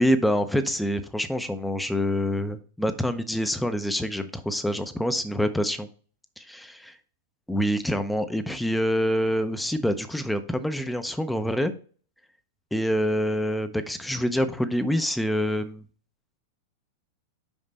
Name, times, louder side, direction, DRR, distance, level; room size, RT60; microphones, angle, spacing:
voice 1, 0.0-5.9 6.4-6.8 7.5-11.7 12.7-15.8, equal, 5° left, 10 dB, 0.6 m, -26 dB
5.4 x 4.9 x 4.0 m, 0.42 s
hypercardioid pair, 120°, 0 cm